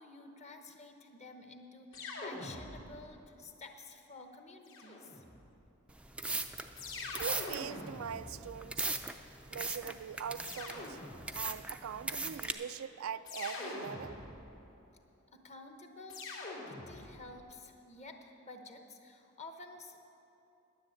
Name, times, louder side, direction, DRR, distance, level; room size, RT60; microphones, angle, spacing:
voice 1, 0.0-5.2 15.3-16.2 16.6-20.0, left 3 dB, 35° left, 5 dB, 1.0 m, -51 dB
sound 1, 1.9-3.1 4.7-5.5 6.8-9.1 10.4-11.5 13.3-14.6 16.1-17.3, left 2 dB, 70° left, 2.6 m, -44 dB
sound 2, 5.9-12.5, right 3 dB, 5° right, 0.4 m, -39 dB
voice 2, 7.1-8.9 9.5-11.0 11.3-14.2, right 8 dB, 80° right, 13 dB, 0.4 m, -42 dB
10.5 x 10.0 x 7.8 m, 3.0 s
head